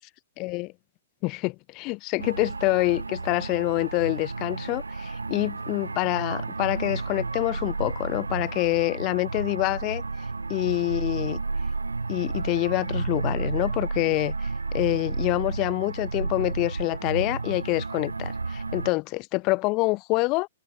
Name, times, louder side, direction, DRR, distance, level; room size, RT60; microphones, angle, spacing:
voice 1, 0.4-0.7 1.2-10.0 10.5-11.4 12.1-20.5, left 24 dB, 35° left, 2.6 m, -26 dB
sound 1, 2.2-18.9, right 3 dB, 90° right, 1.2 m, -32 dB
hypercardioid pair, 120°, 0 cm